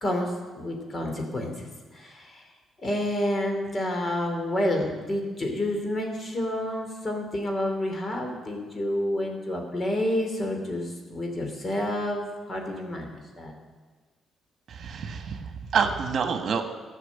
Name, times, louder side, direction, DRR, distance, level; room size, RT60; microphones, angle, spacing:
voice 1, 0.0-2.4 2.8-13.5, left 1 dB, 35° left, 3 dB, 2.8 m, -29 dB
voice 2, 14.7-16.6, right 6 dB, 55° right, 6 dB, 1.4 m, -27 dB
14.5 x 6.0 x 8.4 m, 1.4 s
cardioid pair, 90°, 0 cm